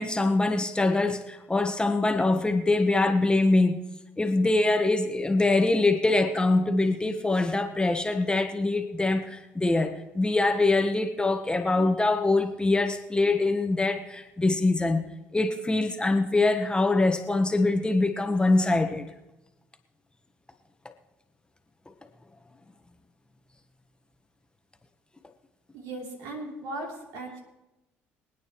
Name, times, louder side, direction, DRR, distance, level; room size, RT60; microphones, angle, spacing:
voice 1, 0.0-3.8 4.2-15.1 15.3-19.1, left 2 dB, 15° left, 6 dB, 1.3 m, -24 dB
voice 2, 25.7-27.4, right 2 dB, 75° right, 0 dB, 3.1 m, -37 dB
27.0 x 9.3 x 3.1 m, 0.98 s
hypercardioid pair, 60°, 6 cm